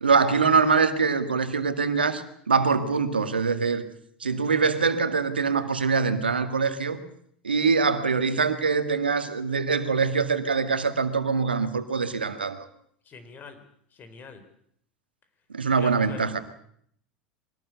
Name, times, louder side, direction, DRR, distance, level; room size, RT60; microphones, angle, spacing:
voice 1, 0.0-3.8 4.2-7.0 7.4-12.7 15.5-16.4, right 5 dB, 85° right, 9 dB, 2.0 m, -24 dB
voice 2, 13.0-13.6 13.9-14.4 15.7-16.3, left 5 dB, 35° left, 10 dB, 4.7 m, -45 dB
24.0 x 18.5 x 8.1 m, 0.68 s
figure-of-eight pair, 80°, 5 cm